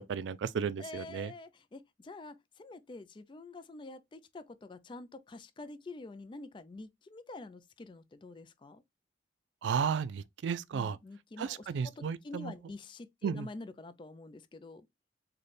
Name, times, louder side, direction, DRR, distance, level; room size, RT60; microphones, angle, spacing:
voice 1, 0.0-1.3 9.6-11.0 11.4-12.5 13.2-13.5, right 6 dB, 85° right, 0.3 m, -34 dB
voice 2, 0.8-8.8 10.7-14.9, left 2 dB, 25° left, 0.3 m, -47 dB
4.0 x 2.2 x 3.2 m
head